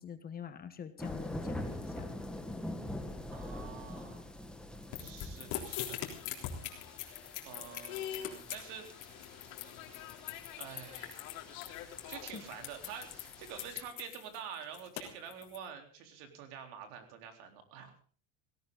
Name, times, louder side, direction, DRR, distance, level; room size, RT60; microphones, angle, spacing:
voice 1, 0.0-2.1 12.3-12.4, left 7 dB, 25° left, 10 dB, 1.2 m, -45 dB
sound 1, 1.0-13.7, left 1 dB, ahead, 1.7 m, -45 dB
voice 2, 3.3-4.3 5.0-6.0 7.4-8.8 9.2-9.4 10.6-11.3 12.1-18.0, right 7 dB, 65° right, 5 dB, 4.0 m, -47 dB
sound 2, 4.9-15.6, left 11 dB, 50° left, 3.7 m, -42 dB
sound 3, 5.5-13.8, left 10 dB, 85° left, 3.7 m, -49 dB
17.5 x 17.5 x 4.0 m, 0.40 s
supercardioid pair, 150°, 40 cm